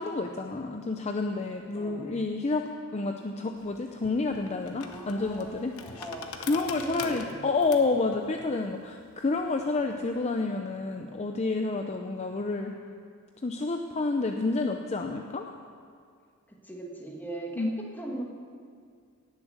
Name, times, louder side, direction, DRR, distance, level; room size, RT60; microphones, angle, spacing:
voice 1, 0.0-5.7 6.5-12.7 13.4-15.5 17.6-17.7, left 3 dB, 30° left, 4 dB, 0.5 m, -29 dB
voice 2, 1.7-2.2 4.8-7.6 12.1-13.0 16.5-18.2, right 1 dB, 10° left, -1 dB, 1.6 m, -41 dB
sound 1, 3.6-10.2, left 5 dB, 80° left, 1.0 m, -44 dB
18.0 x 7.3 x 6.4 m, 2.2 s
head